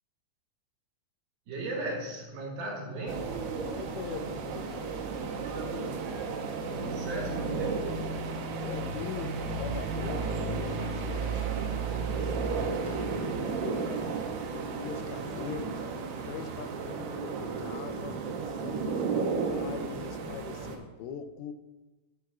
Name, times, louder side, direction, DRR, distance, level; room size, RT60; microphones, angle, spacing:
voice 1, 1.5-3.5 5.8-5.9 6.8-7.9 12.4-13.1, right 2 dB, 60° right, -2 dB, 2.7 m, -37 dB
sound 1, 3.1-20.8, right 4 dB, 80° right, 2.8 m, -33 dB
voice 2, 3.5-6.0 6.8-7.3 8.6-11.5 12.1-13.9 14.5-21.5, left 7 dB, 80° left, 9 dB, 2.9 m, -42 dB
18.0 x 6.2 x 2.4 m, 1.1 s
omnidirectional pair, 6.0 m